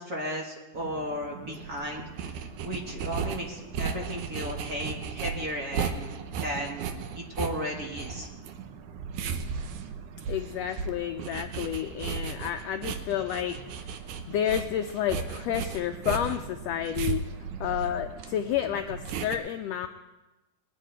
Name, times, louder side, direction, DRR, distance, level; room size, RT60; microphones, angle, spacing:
voice 1, 0.0-2.3 2.6-6.1 6.4-8.3, equal, 35° right, -2 dB, 1.9 m, -35 dB
sound 1, 0.7-19.4, right 6 dB, 80° right, 2.3 m, -36 dB
voice 2, 10.3-13.9 14.3-17.3 17.6-19.9, left 10 dB, 85° left, 7 dB, 1.4 m, -30 dB
21.0 x 9.2 x 4.5 m, 1.1 s
omnidirectional pair, 3.5 m